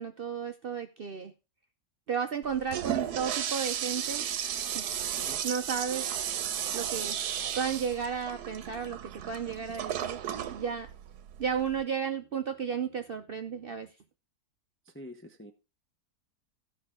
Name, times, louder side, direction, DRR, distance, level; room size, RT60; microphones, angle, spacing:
voice 1, 0.0-1.3 2.1-4.3 4.7-4.9 5.4-6.1 6.7-7.2 7.6-10.2 10.5-10.9 11.4-13.9, right 7 dB, 55° right, 0.6 m, -33 dB
Toilet flush, 2.4-11.8, right 9 dB, 90° right, 1.3 m, -34 dB
voice 2, 14.9-15.5, left 1 dB, 15° left, 0.4 m, -46 dB
14.5 x 5.7 x 3.7 m
omnidirectional pair, 1.7 m